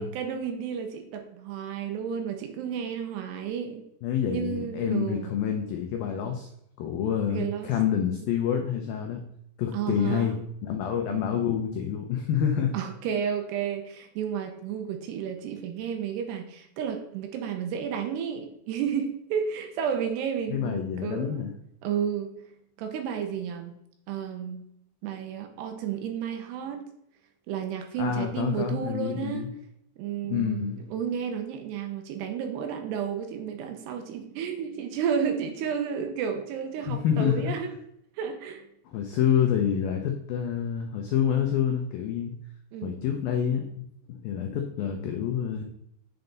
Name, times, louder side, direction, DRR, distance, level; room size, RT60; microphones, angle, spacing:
voice 1, 0.0-3.8 4.3-5.3 7.3-7.7 9.7-10.4 11.1-11.2 12.7-21.5 21.8-22.3 22.8-23.7 24.1-24.6 25.0-26.8 27.5-29.5 30.0-37.7 38.2-38.6 42.7-43.0, right 7 dB, 75° right, 5 dB, 2.8 m, -32 dB
voice 2, 4.0-6.5 6.8-9.2 9.6-12.7 20.5-21.5 28.0-29.5 30.3-30.8 36.9-37.6 38.9-42.3 42.8-45.6, left 8 dB, 85° left, 4 dB, 2.1 m, -27 dB
7.9 x 7.2 x 3.9 m, 0.74 s
omnidirectional pair, 5.2 m